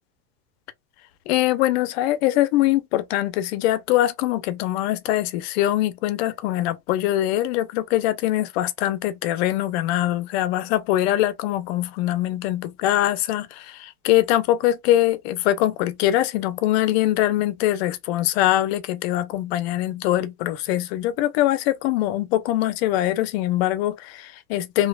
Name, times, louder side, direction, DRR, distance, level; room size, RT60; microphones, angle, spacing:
voice 1, 1.3-24.9, left 14 dB, 70° left, 0.7 m, -23 dB
3.1 x 2.9 x 2.3 m
supercardioid pair, 135°, 33 cm